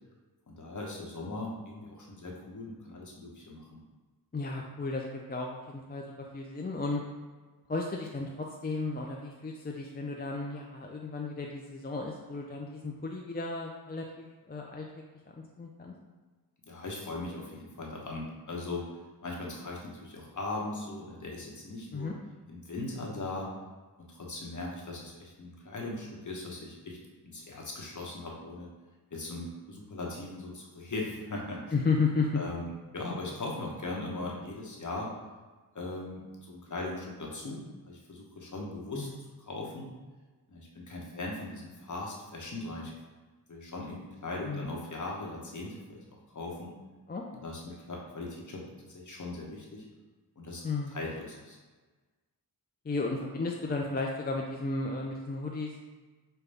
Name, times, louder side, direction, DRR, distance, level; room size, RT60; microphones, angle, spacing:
voice 1, 0.5-3.7 16.7-18.9 19.2-22.1 22.5-23.5 24.0-27.0 27.2-28.7 29.1-31.6 32.3-35.1 35.7-39.1 39.4-39.9 40.5-42.9 43.5-46.0 46.3-46.7 47.4-48.6 48.9-49.8 50.4-50.6 50.9-51.6, left 2 dB, 50° left, -2 dB, 1.0 m, -39 dB
voice 2, 4.3-7.0 7.7-14.9 15.3-15.9 21.9-22.1 31.7-32.3 39.0-39.2 44.5-44.9 47.1-47.4 50.6-51.0 52.8-55.7, left 3 dB, 25° left, 0 dB, 0.5 m, -34 dB
5.4 x 2.3 x 3.4 m, 1.3 s
cardioid pair, 55°, 40 cm